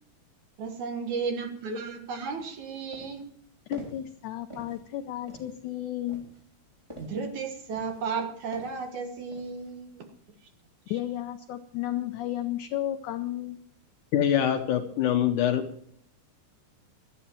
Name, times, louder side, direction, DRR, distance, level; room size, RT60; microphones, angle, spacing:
voice 1, 0.6-3.3 7.0-10.1, right 5 dB, 60° right, 6 dB, 2.5 m, -34 dB
sound 1, 2.4-2.5 2.9-3.3 3.7-4.1 4.5-4.9 5.3-5.6 6.1-7.3 7.7-8.2 8.5-8.9 9.3-9.7, equal, 10° right, 3.7 m, -46 dB
voice 2, 3.7-6.2 10.9-13.6, left 13 dB, 85° left, 9 dB, 1.7 m, -33 dB
voice 3, 14.1-15.7, left 10 dB, 70° left, 6 dB, 2.3 m, -24 dB
17.5 x 13.0 x 4.5 m, 0.65 s
omnidirectional pair, 4.4 m